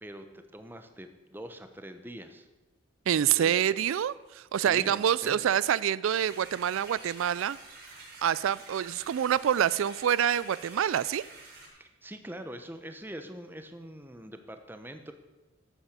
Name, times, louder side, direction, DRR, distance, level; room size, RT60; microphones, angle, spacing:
voice 1, 0.0-2.5 3.3-3.8 4.6-5.6 11.7-15.1, right 1 dB, 10° right, 8 dB, 0.9 m, -44 dB
voice 2, 3.1-7.6 8.2-11.2, right 9 dB, 80° right, 19 dB, 0.3 m, -26 dB
sound 1, 6.1-11.7, right 3 dB, 50° right, 4.1 m, -48 dB
13.0 x 8.9 x 6.7 m, 1.1 s
head